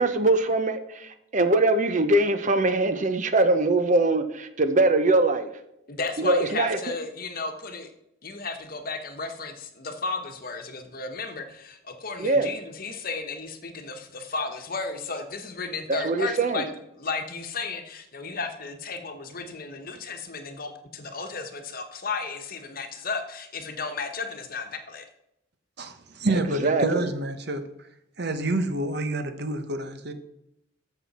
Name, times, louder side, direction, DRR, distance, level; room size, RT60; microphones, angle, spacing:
voice 1, 0.0-5.5 6.2-6.8 12.2-12.5 15.9-16.7 26.6-27.1, right 2 dB, 40° right, 10 dB, 0.7 m, -22 dB
voice 2, 5.9-7.9 8.2-16.7 17.0-25.0, left 4 dB, 50° left, 6 dB, 1.2 m, -34 dB
voice 3, 25.8-27.9 28.2-29.8 30.0-30.1, right 2 dB, 55° right, 8 dB, 1.1 m, -28 dB
14.0 x 6.0 x 4.2 m, 0.81 s
head